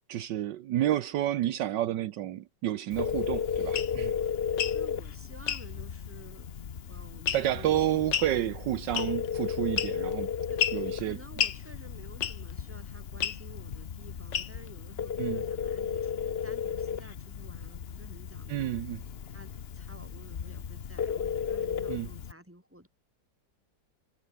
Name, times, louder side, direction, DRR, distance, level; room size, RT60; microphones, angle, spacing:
voice 1, 0.1-4.1 7.3-10.3 10.7-11.2 15.2-15.4 18.5-19.0 21.9-22.1, right 12 dB, 75° right, 1.4 m, -30 dB
Telephone, 2.9-22.3, left 7 dB, 45° left, 0.9 m, -35 dB
sound 1, 3.7-3.9 4.5-4.8 5.5-5.6 7.3-7.6 8.1-8.3 8.9-9.3 9.8-10.1 10.6-10.8 11.4-11.6 12.2-12.5 13.2-13.4 14.3-14.7, left 9 dB, 75° left, 2.0 m, -30 dB
voice 2, 4.7-6.5 6.9-7.9 10.5-10.6 11.0-18.7 19.3-22.9, right 1 dB, 5° right, 5.3 m, -52 dB
omnidirectional pair, 2.0 m